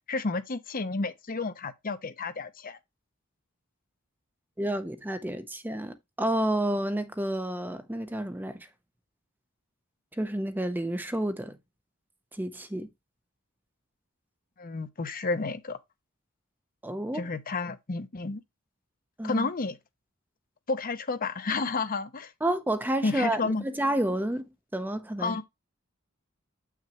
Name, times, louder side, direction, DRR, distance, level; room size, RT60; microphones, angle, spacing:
voice 1, 0.0-2.8 14.6-15.8 17.1-18.4 19.2-19.8 20.7-22.3 23.0-23.6 25.2-25.4, left 3 dB, 45° left, 0.8 m, -31 dB
voice 2, 4.6-8.7 10.2-11.6 12.3-12.9 16.8-17.3 19.2-19.5 22.4-25.4, right 1 dB, 10° right, 0.6 m, -30 dB
8.0 x 5.9 x 3.0 m
head